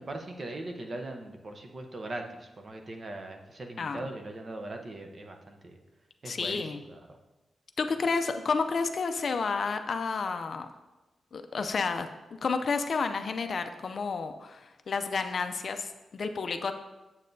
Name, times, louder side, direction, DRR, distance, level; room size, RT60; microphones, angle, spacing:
voice 1, 0.0-5.8 6.2-6.6 6.9-7.0, right 2 dB, 35° right, 4 dB, 0.7 m, -40 dB
voice 2, 3.8-4.1 6.2-6.8 7.8-10.7 11.3-16.7, left 4 dB, 45° left, 7 dB, 0.4 m, -31 dB
8.7 x 7.3 x 2.7 m, 1.1 s
wide cardioid pair, 170°, 0 cm